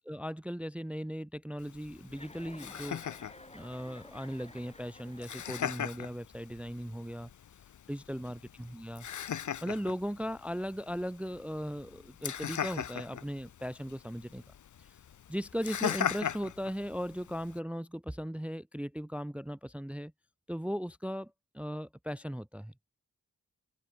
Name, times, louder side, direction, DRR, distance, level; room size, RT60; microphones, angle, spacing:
voice 1, 0.1-3.0 3.5-7.3 7.9-9.1 9.6-14.4 14.8-14.9 15.3-20.1 20.5-22.7, equal, 5° right, 0.5 m, -38 dB
Laughter, 1.6-17.6, left 9 dB, 60° left, 0.7 m, -40 dB
Chuckle chortle, 2.1-6.1, left 1 dB, 20° left, 7.7 m, -53 dB
open air
cardioid pair, 45°, 35 cm